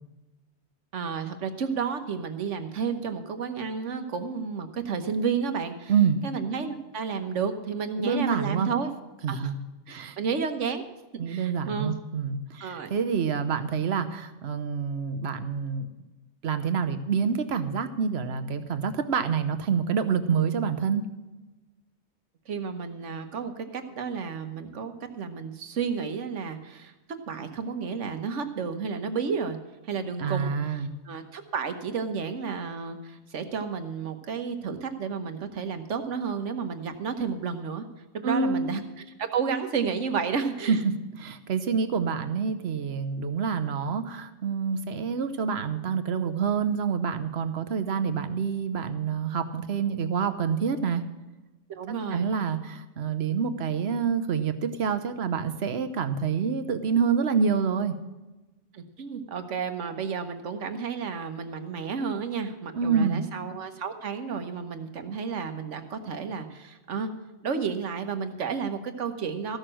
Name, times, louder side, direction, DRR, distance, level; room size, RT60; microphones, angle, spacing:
voice 1, 0.9-5.9 6.2-8.9 9.3-9.5 9.9-10.8 11.3-12.0 12.6-12.9 22.5-26.9 27.3-29.6 29.8-37.8 38.1-40.8 51.7-52.3 58.7-67.1 67.4-69.6, right 6 dB, 80° right, 8 dB, 1.4 m, -32 dB
voice 2, 5.9-6.2 8.0-8.7 9.2-9.6 9.9-10.2 11.2-15.9 16.4-21.0 30.2-30.9 38.2-38.7 40.7-40.9 41.2-51.0 51.9-57.9 62.7-63.2, right 6 dB, 65° right, 9 dB, 1.1 m, -27 dB
14.5 x 6.5 x 7.6 m, 1.1 s
omnidirectional pair, 1.2 m